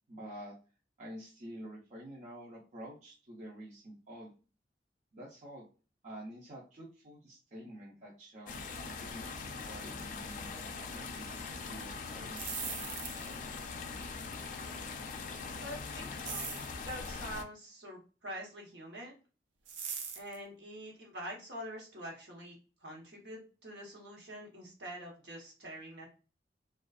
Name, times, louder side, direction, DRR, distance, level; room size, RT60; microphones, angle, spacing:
voice 1, 0.1-0.6 1.0-4.3 5.1-5.7 6.0-12.4, right 1 dB, 45° right, -4 dB, 0.5 m, -48 dB
sound 1, 8.5-17.4, left 4 dB, 45° left, 0.3 m, -42 dB
sound 2, 12.3-13.4 16.2-16.8 19.7-20.4, right 6 dB, 85° right, 0.5 m, -40 dB
voice 2, 15.5-16.5 16.8-19.1 20.1-22.6 22.8-26.1, equal, 70° right, -2 dB, 1.0 m, -45 dB
2.4 x 2.3 x 2.3 m, 0.35 s
head